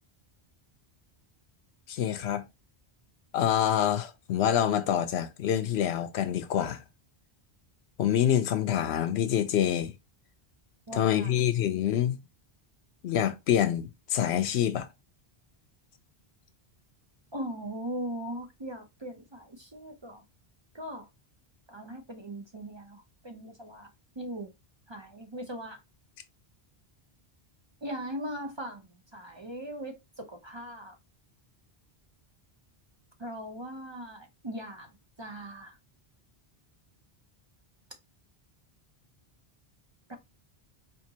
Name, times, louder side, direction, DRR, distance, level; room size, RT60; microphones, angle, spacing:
voice 1, 1.9-2.4 3.3-6.8 8.0-9.9 10.9-12.2 13.0-14.9, left 10 dB, 85° left, 0.9 m, -26 dB
voice 2, 10.9-11.3 17.3-20.2 20.7-21.1 21.7-23.9 24.2-24.5 24.9-25.8 27.8-31.0 33.2-35.8 40.1-40.2, right 1 dB, 35° right, 0.5 m, -39 dB
4.4 x 2.7 x 2.7 m
omnidirectional pair, 1.1 m